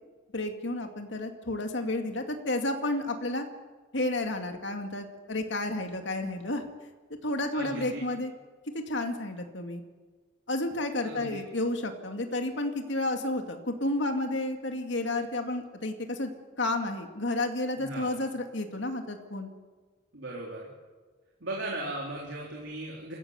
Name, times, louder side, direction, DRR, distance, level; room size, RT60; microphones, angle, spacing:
voice 1, 0.3-3.4 3.9-6.6 7.2-8.3 8.9-9.8 10.5-16.3 16.6-19.5, left 2 dB, 70° left, 5 dB, 2.2 m, -31 dB
voice 2, 7.5-8.0 11.0-11.4 17.8-18.1 20.1-20.7 21.4-23.2, right 2 dB, 75° right, -3 dB, 3.7 m, -37 dB
27.0 x 15.0 x 8.2 m, 1.4 s
head